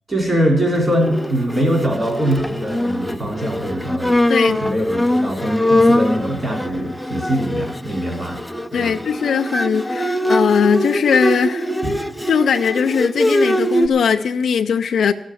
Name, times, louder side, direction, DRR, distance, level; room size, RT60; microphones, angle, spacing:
voice 1, 0.1-8.4 8.7-8.9 11.8-11.9, equal, 25° right, 0 dB, 3.2 m, -22 dB
Bowed string instrument, 0.9-13.9, left 1 dB, ahead, 0.5 m, -22 dB
voice 2, 4.3-4.6 8.7-11.7 12.3-15.1, left 6 dB, 80° left, 5 dB, 0.5 m, -19 dB
13.5 x 6.3 x 9.8 m, 0.84 s
wide cardioid pair, 140°, 0 cm